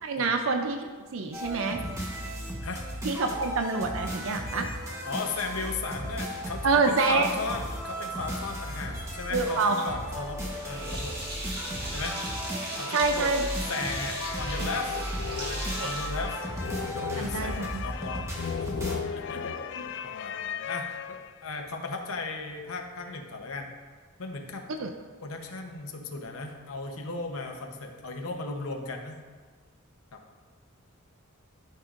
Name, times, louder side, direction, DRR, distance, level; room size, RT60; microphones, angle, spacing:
voice 1, 0.0-1.8 3.0-4.7 6.6-7.3 9.3-9.9 12.9-13.5 15.8-16.0 17.2-17.8 24.7-24.9, right 4 dB, 65° right, 5 dB, 0.5 m, -27 dB
sound 1, 1.3-18.9, equal, 15° right, 1.1 m, -35 dB
voice 2, 5.0-11.2 11.9-12.2 12.7-14.9 15.3-16.4 16.8-18.3 18.6-23.7 24.2-24.7 25.2-29.2 30.1-30.2, left 3 dB, 75° left, 3 dB, 0.9 m, -36 dB
Sink (filling or washing), 10.5-16.9, right 1 dB, 45° right, 1.8 m, -38 dB
sound 2, 13.6-21.5, left 7 dB, 55° left, 0.3 m, -36 dB
11.5 x 5.5 x 2.5 m, 1.5 s
head